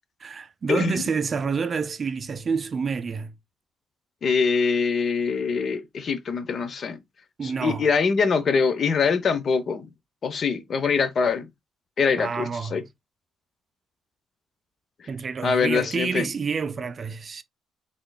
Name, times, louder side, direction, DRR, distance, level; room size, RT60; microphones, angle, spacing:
voice 1, 0.2-3.3 7.4-7.8 12.1-12.8 15.1-17.4, right 5 dB, 40° right, 0.4 m, -28 dB
voice 2, 4.2-7.0 7.4-9.9 10.2-11.5 12.0-12.8 15.4-16.3, left 5 dB, 50° left, 0.7 m, -23 dB
3.7 x 3.7 x 2.2 m
cardioid pair, 90°, 0 cm